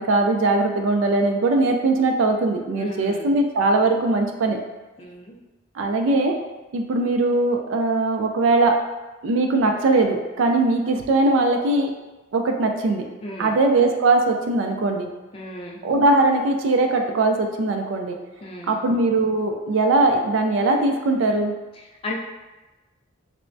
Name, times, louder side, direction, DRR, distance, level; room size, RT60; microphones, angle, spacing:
voice 1, 0.0-4.6 5.8-6.3 6.7-8.8 9.2-11.9 12.3-13.0 13.4-15.1 15.8-18.2 18.7-21.5, right 2 dB, 70° right, 4 dB, 0.3 m, -20 dB
voice 2, 2.8-3.3 5.0-5.4 13.2-13.6 15.3-15.8 18.4-18.8 21.8-22.2, left 1 dB, 30° left, -2 dB, 0.3 m, -34 dB
3.3 x 2.1 x 2.5 m, 1.1 s
head